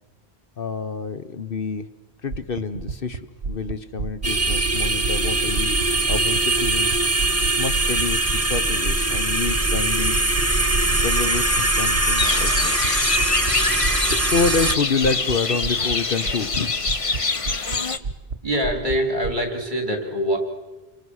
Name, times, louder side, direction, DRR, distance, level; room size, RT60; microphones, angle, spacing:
voice 1, 0.6-1.9 2.2-7.0 7.6-10.2 11.0-12.8 13.7-16.9 17.3-17.5, left 4 dB, 55° left, 11 dB, 1.1 m, -28 dB
sound 1, 2.3-6.4 6.6-9.8 10.1-10.4 10.7-11.0 11.3-11.6 11.9-12.3 12.5-12.9 13.1-13.5 13.8-14.2 14.4-14.8 15.0-15.4 15.6-15.9 16.2-17.2 17.4-17.8 18.0-18.3 18.6-19.3, right 4 dB, 70° right, 1.4 m, -30 dB
sound 2, 4.2-14.7, right 2 dB, 15° right, 1.1 m, -22 dB
sound 3, 12.2-18.0, left 4 dB, 30° left, 0.9 m, -25 dB
voice 2, 18.4-20.4, equal, 45° right, 4 dB, 4.0 m, -24 dB
28.5 x 24.0 x 6.4 m, 1.1 s
omnidirectional pair, 1.1 m